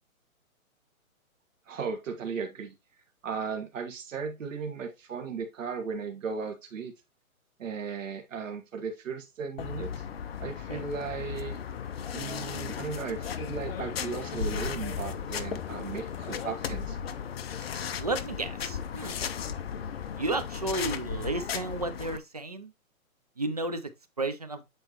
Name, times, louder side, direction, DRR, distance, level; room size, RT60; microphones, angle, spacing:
voice 1, 1.7-2.7 3.2-6.9 7.6-9.9 10.4-11.6 12.1-17.0, right 5 dB, 60° right, 1.6 m, -36 dB
sound 1, 9.6-22.2, left 7 dB, 45° left, 0.6 m, -35 dB
voice 2, 18.0-19.2 20.2-22.7 23.4-23.9 24.2-24.6, right 2 dB, 30° right, 0.4 m, -32 dB
8.0 x 4.3 x 2.9 m
hypercardioid pair, 150°, 43 cm